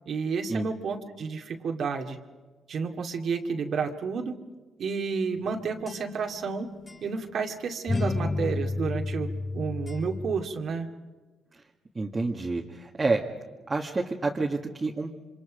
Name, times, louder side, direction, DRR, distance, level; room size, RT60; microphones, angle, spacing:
voice 1, 0.1-2.2 2.7-4.4 4.8-6.7 7.0-9.3 9.5-10.9, right 5 dB, 60° right, 3 dB, 2.3 m, -31 dB
sound 1, 5.3-6.5 6.9-7.0 7.9-10.4, left 3 dB, 25° left, 5.6 m, -32 dB
voice 2, 12.0-13.2 13.7-15.1, right 3 dB, 25° right, -1 dB, 2.0 m, -28 dB
27.5 x 25.5 x 5.2 m, 1.3 s
cardioid pair, 90°, 0 cm